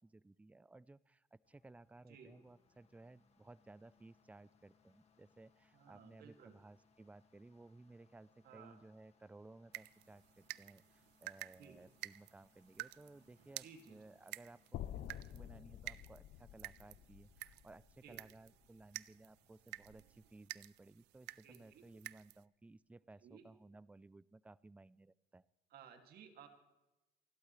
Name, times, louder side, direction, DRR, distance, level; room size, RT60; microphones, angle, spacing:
voice 1, 0.0-25.5, right 2 dB, 10° right, 20 dB, 0.4 m, -59 dB
sound 1, 1.4-20.4, left 5 dB, 40° left, 2.0 m, -75 dB
voice 2, 5.7-6.5 8.4-8.8 11.6-11.8 13.6-14.0 18.0-18.2 21.4-21.9 23.2-23.5 25.7-26.5, right 7 dB, 65° right, 5 dB, 2.4 m, -58 dB
sound 2, 9.7-22.5, right 19 dB, 85° right, 0.4 m, -52 dB
sound 3, 14.7-18.9, left 12 dB, 60° left, 0.6 m, -50 dB
29.0 x 12.0 x 3.2 m, 1.0 s
cardioid pair, 110°, 17 cm